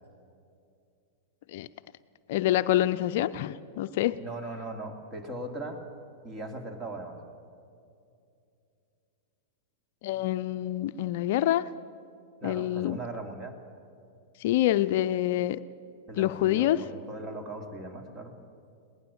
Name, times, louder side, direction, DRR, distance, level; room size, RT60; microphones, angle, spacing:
voice 1, 2.3-4.2 10.0-11.6 12.4-13.0 14.4-15.6 16.2-16.8, left 13 dB, 60° left, 13 dB, 0.5 m, -26 dB
voice 2, 4.2-5.8 6.2-7.2 12.4-13.6 16.1-18.3, right 2 dB, 25° right, 5 dB, 2.9 m, -39 dB
21.0 x 18.5 x 7.2 m, 2.5 s
hypercardioid pair, 105°, 0 cm